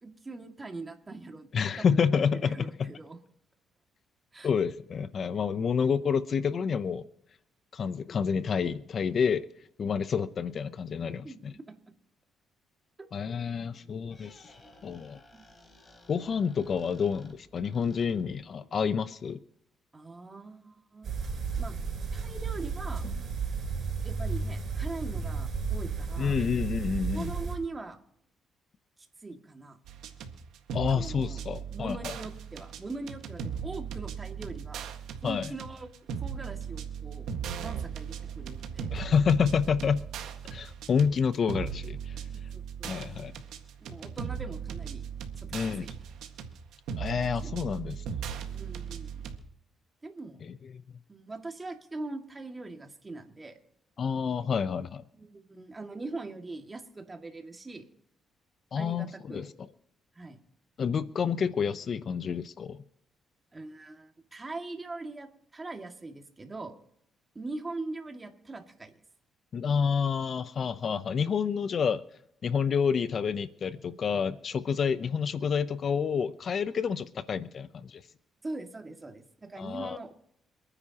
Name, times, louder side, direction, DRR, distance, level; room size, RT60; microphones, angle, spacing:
voice 1, 0.0-3.2 4.3-4.5 11.2-11.7 13.0-13.1 13.8-13.9 15.3-15.4 19.9-21.1 21.6-21.8 22.1-23.0 24.0-26.4 27.1-28.0 29.2-29.8 30.9-31.4 31.7-34.9 35.2-35.9 36.2-37.3 37.6-38.9 42.3-42.9 43.8-45.1 45.4-45.5 45.8-45.9 47.2-47.5 48.5-49.3 50.0-50.4 51.1-53.6 55.1-57.9 58.7-59.5 60.1-60.4 63.5-66.7 67.3-69.0 78.4-80.1, right 3 dB, 25° right, 4 dB, 2.2 m, -41 dB
voice 2, 1.5-2.6 4.4-7.0 7.7-9.4 9.8-11.5 13.1-14.5 14.8-15.2 16.1-19.4 26.2-27.3 30.7-32.1 35.2-35.5 38.9-40.1 40.5-42.1 42.8-43.3 45.5-45.9 47.0-48.0 50.4-50.5 54.0-55.0 58.7-59.5 60.8-62.8 69.5-72.0 72.4-78.0 79.6-80.0, left 6 dB, 50° left, 13 dB, 0.7 m, -29 dB
Squeak, 14.0-18.5, left 1 dB, 25° left, 5.0 m, -56 dB
sound 1, 21.0-27.6, right 5 dB, 55° right, 5.1 m, -33 dB
sound 2, 29.9-49.4, right 7 dB, 85° right, 1.7 m, -38 dB
27.5 x 9.9 x 3.0 m, 0.77 s
cardioid pair, 90°, 0 cm